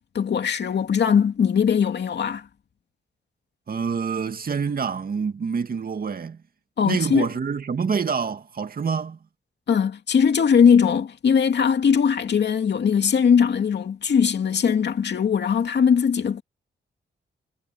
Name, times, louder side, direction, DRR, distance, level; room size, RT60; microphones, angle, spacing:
voice 1, 0.1-2.5 6.8-7.3 9.7-16.4, left 7 dB, 65° left, 2.5 m, -20 dB
voice 2, 3.7-6.4 6.8-9.2, right 6 dB, 50° right, 2.2 m, -26 dB
cardioid pair, 90°, 19 cm